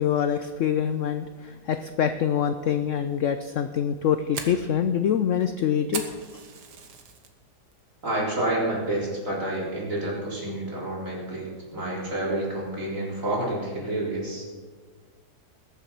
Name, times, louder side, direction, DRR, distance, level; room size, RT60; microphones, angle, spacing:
voice 1, 0.0-6.0, left 8 dB, 65° left, 9 dB, 0.7 m, -25 dB
Fire, 3.8-7.3 7.7-8.1 8.5-8.6 9.1-9.5, right 5 dB, 75° right, 1.9 m, -38 dB
voice 2, 8.0-14.4, right 1 dB, 50° right, -5 dB, 4.2 m, -29 dB
21.0 x 7.2 x 5.9 m, 1.5 s
omnidirectional pair, 1.9 m